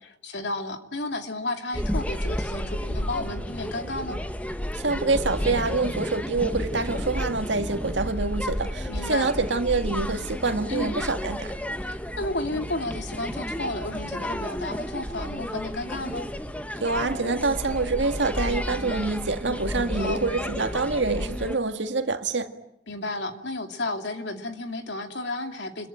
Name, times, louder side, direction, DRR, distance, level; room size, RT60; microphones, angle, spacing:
voice 1, 0.0-4.2 8.9-9.3 10.7-11.0 11.9-16.3 19.9-20.2 22.9-25.9, left 2 dB, 75° left, 2.6 m, -32 dB
sound 1, 1.7-21.6, equal, 10° left, 1.2 m, -32 dB
voice 2, 4.7-11.6 16.8-22.6, right 3 dB, 80° right, 1.8 m, -26 dB
28.5 x 22.5 x 8.9 m
head